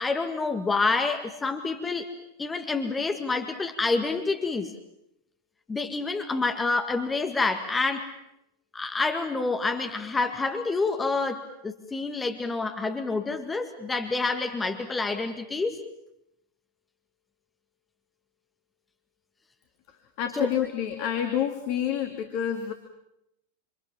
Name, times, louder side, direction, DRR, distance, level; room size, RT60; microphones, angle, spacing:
voice 1, 0.0-2.1 2.4-4.7 5.7-8.1 8.7-15.8 20.4-20.5, left 3 dB, 15° left, 7 dB, 2.0 m, -28 dB
voice 2, 20.2-22.7, left 9 dB, 45° left, 6 dB, 2.6 m, -28 dB
28.0 x 27.5 x 7.5 m, 0.82 s
figure-of-eight pair, 90°, 0 cm